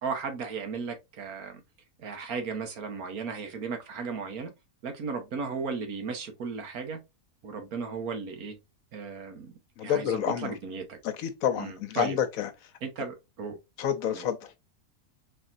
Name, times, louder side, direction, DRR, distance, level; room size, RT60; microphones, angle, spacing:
voice 1, 0.0-1.6 2.0-4.5 4.8-7.0 7.4-8.5 8.9-9.5 9.8-11.0 11.6-12.2 12.8-13.6 14.1-14.3, right 5 dB, 80° right, 1.5 m, -35 dB
voice 2, 9.8-10.5 11.0-12.5 13.8-14.5, left 9 dB, 75° left, 1.1 m, -29 dB
4.3 x 3.4 x 2.5 m
omnidirectional pair, 1.5 m